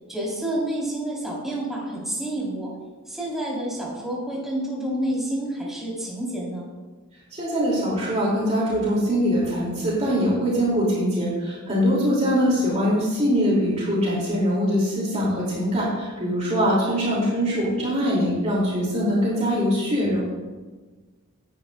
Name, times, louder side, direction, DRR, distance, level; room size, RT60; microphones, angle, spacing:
voice 1, 0.1-2.7 3.1-6.7, right 1 dB, ahead, -6 dB, 3.8 m, -29 dB
voice 2, 7.3-20.3, equal, 30° right, -6 dB, 2.8 m, -22 dB
16.5 x 10.5 x 2.4 m, 1.3 s
head